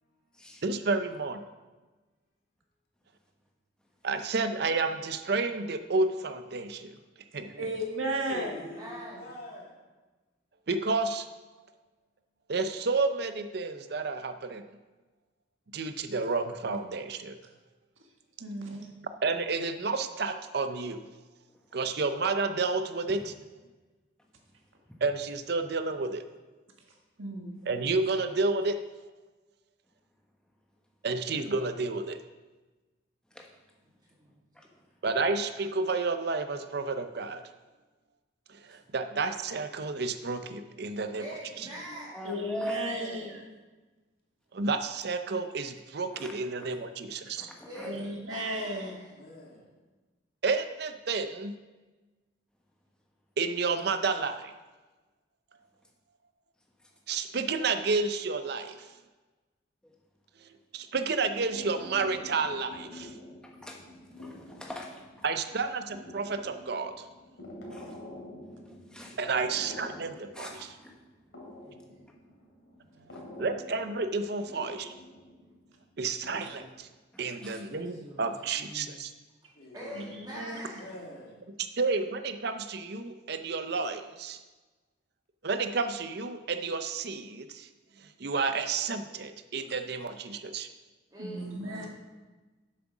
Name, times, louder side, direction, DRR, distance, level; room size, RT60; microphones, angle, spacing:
voice 1, 0.0-0.6 8.3-9.8 41.6-42.1 42.9-43.3 49.0-49.8 67.4-67.8 73.1-73.4 79.6-81.4 91.3-91.9, left 2 dB, 50° left, 2.2 m, -47 dB
voice 2, 0.6-1.4 4.0-6.9 7.3-7.5 10.7-11.3 12.5-14.6 15.7-17.4 19.2-21.0 21.7-23.2 25.0-26.2 27.7-28.8 31.0-32.2 35.0-37.4 38.5-41.2 44.5-47.5 50.4-51.5 53.4-54.5 57.1-58.8 60.7-63.1 65.2-67.1 69.2-70.5 73.4-74.9 76.0-76.9 77.2-79.1 81.8-84.4 85.4-87.7 88.2-90.7, right 4 dB, 55° right, 0.6 m, -30 dB
voice 3, 7.6-8.5 18.4-18.9 27.2-27.5 42.2-43.4 47.8-48.9 76.4-76.5 79.9-80.6 91.2-91.9, right 1 dB, 85° right, 1.6 m, -34 dB
voice 4, 8.4-9.3 34.2-34.5 41.2-42.3 47.6-49.2 71.6-72.1 72.7-73.1 77.7-78.3 78.6-78.9 79.7-81.0 91.1-91.9, equal, 20° right, 1.7 m, -44 dB
voice 5, 42.1-43.2 46.1-46.7 47.4-48.0 56.8-56.9 63.4-63.8 64.1-65.2 67.7-68.0 68.6-69.2 70.3-70.9 73.1-73.2 77.1-77.6, equal, 5° left, 1.2 m, -42 dB
sound 1, 61.3-76.8, left 1 dB, 80° left, 2.7 m, -48 dB
7.7 x 7.5 x 6.0 m
head